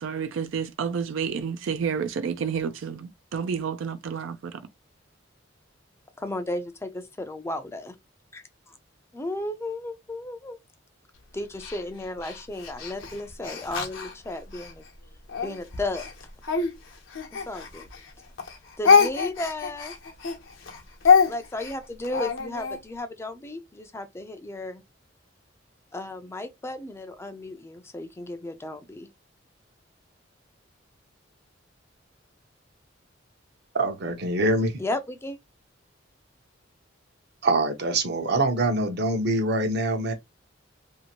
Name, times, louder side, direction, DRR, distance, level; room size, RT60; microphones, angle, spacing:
voice 1, 0.0-4.5, right 6 dB, 75° right, 0.4 m, -30 dB
voice 2, 6.2-7.9 8.3-8.4 9.1-10.6 11.3-14.8 15.4-16.1 17.3-17.9 18.8-20.0 21.2-24.8 25.9-29.1 34.8-35.4, left 2 dB, 15° left, 0.4 m, -34 dB
Speech, 11.6-14.7 15.3-18.1 18.4-22.8, left 5 dB, 75° left, 0.8 m, -25 dB
voice 3, 33.7-34.8 37.4-40.1, right 2 dB, 60° right, 0.8 m, -24 dB
2.7 x 2.5 x 2.8 m
head